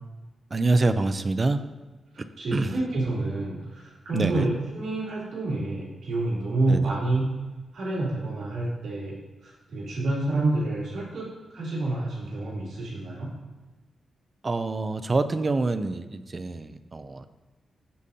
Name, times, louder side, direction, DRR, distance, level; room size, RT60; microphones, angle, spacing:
voice 1, 0.5-1.6 2.5-2.7 4.1-4.5 6.7-6.9 14.4-17.3, right 3 dB, 35° right, 11 dB, 0.4 m, -26 dB
voice 2, 2.4-7.3 7.7-9.1 9.4-11.3 11.5-13.3, right 2 dB, 80° right, -7 dB, 2.9 m, -28 dB
14.0 x 5.0 x 2.8 m, 1.2 s
cardioid pair, 90°, 0 cm